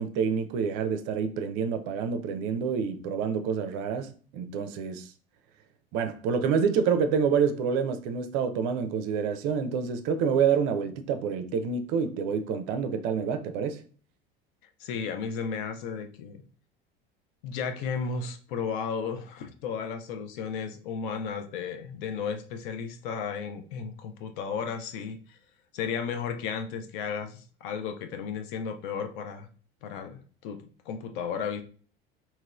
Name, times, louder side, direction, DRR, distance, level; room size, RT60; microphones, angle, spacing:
voice 1, 0.0-5.1 5.9-13.8, right 6 dB, 50° right, 0.5 m, -27 dB
voice 2, 14.8-16.4 17.4-25.4 25.7-29.5 29.8-31.6, left 6 dB, 60° left, 0.6 m, -34 dB
2.9 x 2.9 x 2.3 m
figure-of-eight pair, 65°, 30 cm